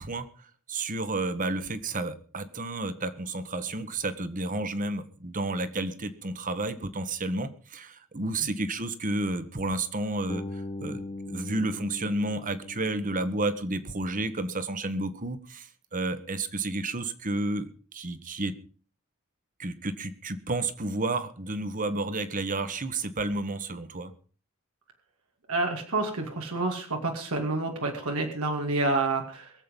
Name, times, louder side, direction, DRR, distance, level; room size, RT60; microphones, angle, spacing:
voice 1, 0.0-18.5 19.6-24.1, right 2 dB, 40° right, 12 dB, 1.3 m, -31 dB
Bass guitar, 10.3-14.2, left 2 dB, 20° left, 1.1 m, -40 dB
voice 2, 25.5-29.5, right 2 dB, 90° right, 2 dB, 2.4 m, -28 dB
23.0 x 7.8 x 5.3 m, 0.40 s
head